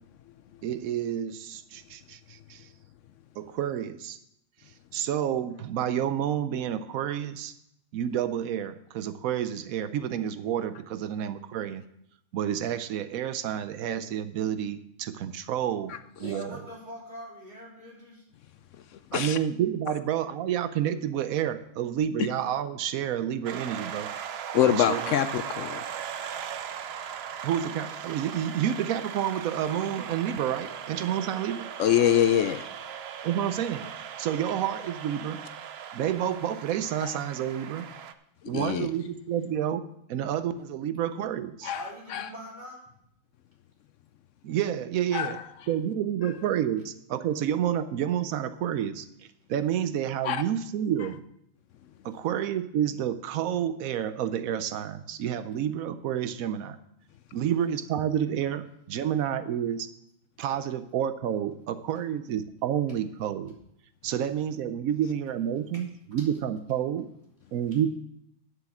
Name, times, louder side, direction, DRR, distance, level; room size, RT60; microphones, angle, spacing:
voice 1, 0.6-2.7 3.4-4.2 4.6-7.5 7.9-11.8 12.3-16.6 19.1-24.1 24.6-25.2 27.4-31.7 33.2-33.9 34.2-35.4 35.9-37.9 38.5-39.8 40.1-41.7 44.4-45.4 45.7-49.1 49.5-51.2 52.0-56.8 57.3-59.9 60.4-63.6 64.0-67.1 67.5-67.9, right 10 dB, 90° right, 12 dB, 1.1 m, -29 dB
voice 2, 16.2-18.2 41.7-42.8, equal, 30° right, -3 dB, 3.2 m, -43 dB
sound 1, 23.5-38.1, right 8 dB, 60° right, 0.8 m, -38 dB
voice 3, 24.5-25.8 31.8-32.6 38.5-38.9 41.6-41.8 42.1-42.3 45.1-45.3 50.2-50.4, left 10 dB, 70° left, 12 dB, 0.9 m, -24 dB
8.9 x 7.7 x 7.1 m, 0.77 s
omnidirectional pair, 1.4 m